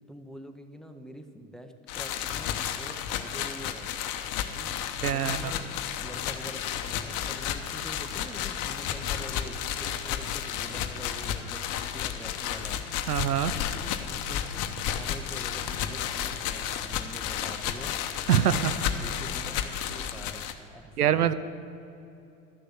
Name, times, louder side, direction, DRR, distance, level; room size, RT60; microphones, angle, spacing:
voice 1, 0.1-3.9 4.5-12.8 13.5-14.6 14.9-21.3, equal, ahead, 6 dB, 0.8 m, -46 dB
sound 1, 1.9-20.5, left 9 dB, 45° left, 0.9 m, -32 dB
voice 2, 5.0-5.4 13.1-13.5 18.3-18.7 21.0-21.3, right 10 dB, 90° right, 14 dB, 0.6 m, -24 dB
12.5 x 6.6 x 7.9 m, 2.8 s
hypercardioid pair, 85°, 44 cm